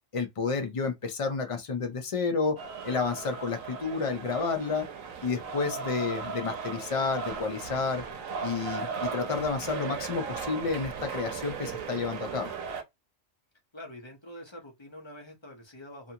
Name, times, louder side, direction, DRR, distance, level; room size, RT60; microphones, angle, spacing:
voice 1, 0.1-2.6 2.8-4.9 5.2-8.0 8.4-12.5, left 4 dB, 55° left, 0.3 m, -30 dB
sound 1, 2.6-12.8, right 6 dB, 85° right, 1.0 m, -37 dB
voice 2, 13.7-16.1, left 1 dB, 25° left, 0.7 m, -45 dB
2.6 x 2.5 x 2.7 m
omnidirectional pair, 1.4 m